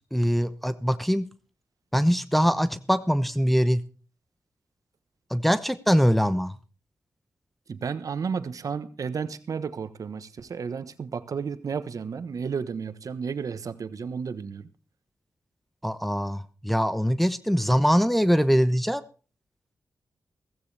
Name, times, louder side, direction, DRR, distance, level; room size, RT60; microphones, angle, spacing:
voice 1, 0.1-1.3 1.9-3.8 5.3-6.6 15.8-19.0, equal, ahead, 0.9 m, -23 dB
voice 2, 7.7-14.7, right 6 dB, 65° right, 1.1 m, -32 dB
15.5 x 15.5 x 3.4 m
cardioid pair, 55°, 6 cm